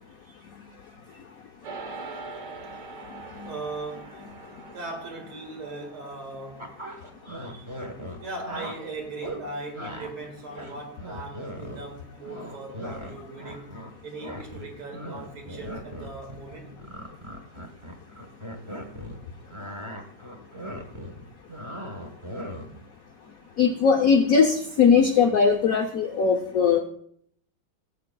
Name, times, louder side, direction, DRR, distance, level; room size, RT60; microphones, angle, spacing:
sound 1, 1.6-11.1, right 4 dB, 55° right, 1.7 m, -45 dB
voice 1, 3.5-4.2 4.7-6.7 8.2-16.7, right 3 dB, 75° right, 2.8 m, -39 dB
sound 2, 6.6-8.7 9.2-9.4 9.7-10.1 10.4-12.0 12.2-13.9 14.2-19.2 19.5-22.8, equal, 25° right, 0.7 m, -38 dB
voice 2, 23.6-26.8, left 6 dB, 75° left, 0.8 m, -20 dB
16.5 x 7.7 x 2.2 m
omnidirectional pair, 2.4 m